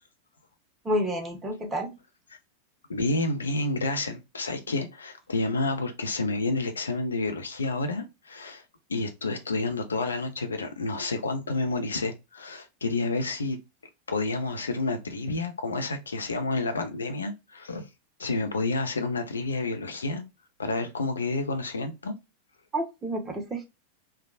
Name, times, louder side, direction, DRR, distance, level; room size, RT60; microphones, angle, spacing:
voice 1, 0.8-1.9 22.7-23.6, equal, 15° right, 1.0 m, -29 dB
voice 2, 2.9-8.6 8.9-13.6 14.1-17.9 18.2-20.2 20.6-22.1, left 2 dB, 75° left, 0.7 m, -29 dB
3.4 x 2.3 x 2.3 m
figure-of-eight pair, 90°, 0 cm